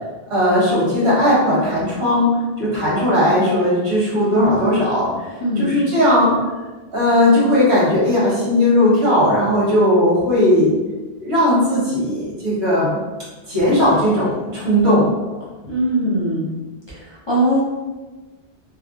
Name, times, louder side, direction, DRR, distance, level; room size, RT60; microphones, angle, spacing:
voice 1, 0.3-5.1 5.6-6.4 6.9-10.7 11.2-13.0 13.5-15.1, left 1 dB, 75° right, -8 dB, 1.4 m, -17 dB
voice 2, 15.7-16.5 16.9-17.6, right 1 dB, 30° left, -7 dB, 0.6 m, -20 dB
3.4 x 2.2 x 2.4 m, 1.2 s
omnidirectional pair, 1.1 m